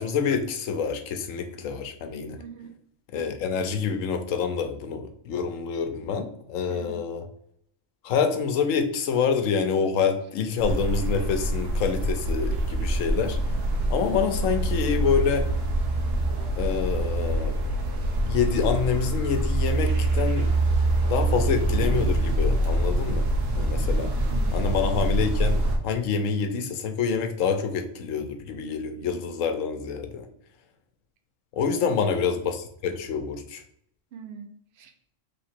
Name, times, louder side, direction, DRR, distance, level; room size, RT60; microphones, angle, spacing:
voice 1, 0.0-2.4 3.1-7.2 8.0-13.4 13.9-15.5 16.6-17.5 18.2-20.5 21.1-23.2 23.5-24.1 24.5-30.3 31.5-33.6, left 6 dB, 85° left, 7 dB, 1.0 m, -27 dB
voice 2, 2.4-2.8 6.7-7.0 24.2-24.7 31.7-32.2 34.1-34.9, right 6 dB, 60° right, 5 dB, 0.9 m, -44 dB
sound 1, 10.6-25.8, right 1 dB, 75° right, 1.3 m, -25 dB
3.5 x 2.9 x 4.3 m, 0.69 s
omnidirectional pair, 1.3 m